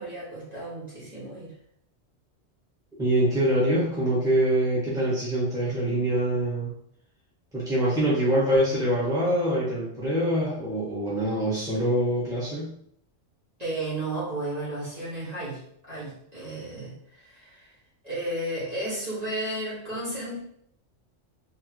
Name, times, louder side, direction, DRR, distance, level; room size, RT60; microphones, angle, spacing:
voice 1, 0.0-1.5 13.6-17.7 18.0-20.4, right 1 dB, 35° right, -9 dB, 1.9 m, -33 dB
voice 2, 3.0-6.7 7.5-12.7, right 1 dB, 5° right, -8 dB, 1.5 m, -24 dB
4.0 x 3.3 x 3.1 m, 0.68 s
omnidirectional pair, 1.2 m